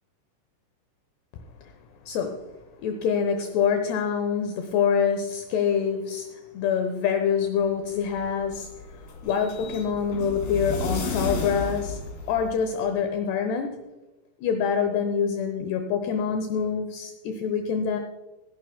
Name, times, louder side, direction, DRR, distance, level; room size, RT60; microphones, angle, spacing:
voice 1, 2.1-2.5 2.8-13.8 14.4-18.0, left 7 dB, 75° left, 6 dB, 2.5 m, -26 dB
sound 1, 7.8-12.9, left 3 dB, 50° left, 3.7 m, -33 dB
22.0 x 11.5 x 2.2 m, 1.1 s
omnidirectional pair, 5.9 m